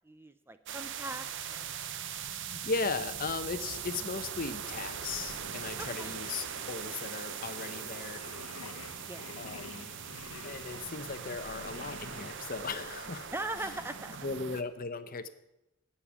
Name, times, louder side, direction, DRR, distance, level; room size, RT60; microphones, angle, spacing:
voice 1, 0.0-1.7 5.8-6.1 9.0-9.3 10.2-10.3 13.3-14.1, right 2 dB, 10° right, 10 dB, 0.4 m, -40 dB
sound 1, 0.7-14.6, right 8 dB, 60° right, 0.8 m, -41 dB
voice 2, 2.5-8.2 8.6-8.8 9.4-9.9 10.4-13.3 13.6-13.8 14.2-15.3, left 4 dB, 40° left, 11 dB, 0.8 m, -37 dB
Singing, 4.6-12.3, left 4 dB, 80° left, 0.9 m, -49 dB
12.0 x 8.6 x 7.4 m, 0.92 s
head